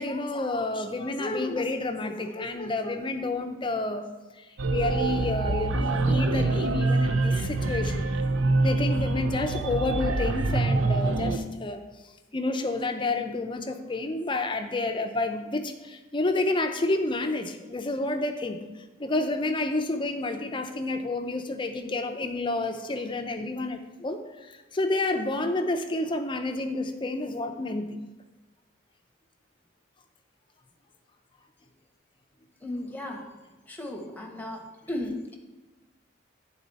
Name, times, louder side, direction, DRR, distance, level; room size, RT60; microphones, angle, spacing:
voice 1, 0.0-4.0 4.3-8.1 8.6-11.8 12.3-18.6 19.0-28.0, left 2 dB, 25° left, 6 dB, 0.5 m, -29 dB
sound 1, 4.6-11.4, right 2 dB, 70° right, 0.5 m, -25 dB
voice 2, 32.6-33.3 33.7-35.4, left 1 dB, 10° left, 1 dB, 0.9 m, -35 dB
9.7 x 4.0 x 4.0 m, 1.1 s
head